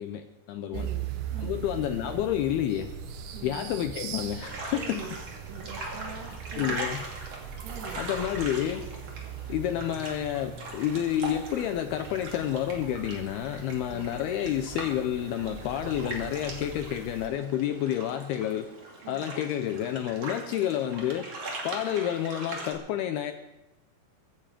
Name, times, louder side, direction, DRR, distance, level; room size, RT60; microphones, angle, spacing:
voice 1, 0.0-0.9 1.4-2.9 3.4-5.1 6.5-7.0 8.0-8.9 9.5-18.7 19.1-21.3 21.6-23.3, left 11 dB, 80° left, 7 dB, 2.3 m, -29 dB
voice 2, 0.7-1.7 3.3-3.7 4.7-5.2 5.5-6.8 7.6-8.0 13.9-14.1 19.0-19.3, right 5 dB, 70° right, 5 dB, 3.4 m, -43 dB
sound 1, 0.7-17.3, right 8 dB, 85° right, 3.6 m, -41 dB
sound 2, 4.4-22.7, right 2 dB, 40° right, 3.0 m, -41 dB
23.5 x 10.5 x 5.1 m, 0.98 s
omnidirectional pair, 5.2 m